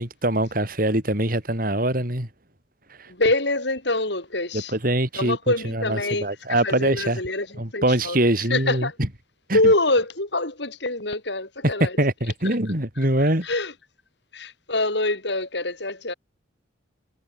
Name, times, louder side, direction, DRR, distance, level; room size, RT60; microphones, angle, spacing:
voice 1, 0.0-2.3 4.5-5.4 5.6-7.2 7.6-8.9 9.5-9.6 11.8-13.5, right 1 dB, 50° right, 4.7 m, -23 dB
voice 2, 3.1-4.7 5.1-8.2 8.5-9.0 9.5-12.0 13.4-13.7 14.3-16.1, left 2 dB, 65° left, 5.5 m, -25 dB
head